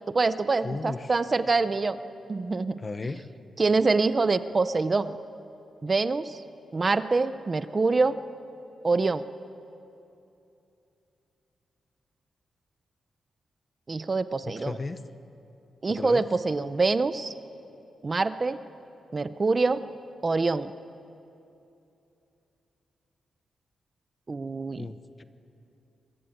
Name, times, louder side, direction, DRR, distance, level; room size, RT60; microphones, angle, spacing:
voice 1, 0.1-2.0 2.3-3.1 3.6-5.2 5.8-6.4 6.7-8.2 8.8-9.3 13.9-14.8 15.8-17.3 18.0-18.6 19.1-19.8 20.2-20.7 24.3-24.9, right 3 dB, 25° right, 12 dB, 0.6 m, -25 dB
voice 2, 0.6-1.1 2.8-3.2 14.4-15.0 15.9-16.2 24.8-25.2, left 3 dB, 25° left, 11 dB, 0.9 m, -35 dB
27.0 x 22.5 x 9.1 m, 2.8 s
wide cardioid pair, 175°, 0 cm